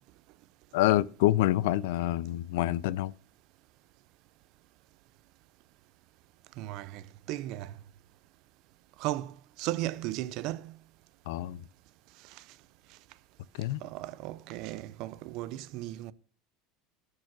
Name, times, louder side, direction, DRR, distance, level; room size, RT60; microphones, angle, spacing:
voice 1, 0.7-3.1 11.3-11.6 13.6-13.8, left 15 dB, 70° left, 0.5 m, -27 dB
voice 2, 6.6-7.7 9.0-10.8 12.2-12.4 13.8-16.1, right 15 dB, 45° right, 0.5 m, -36 dB
12.5 x 4.8 x 5.9 m
supercardioid pair, 170°, 0 cm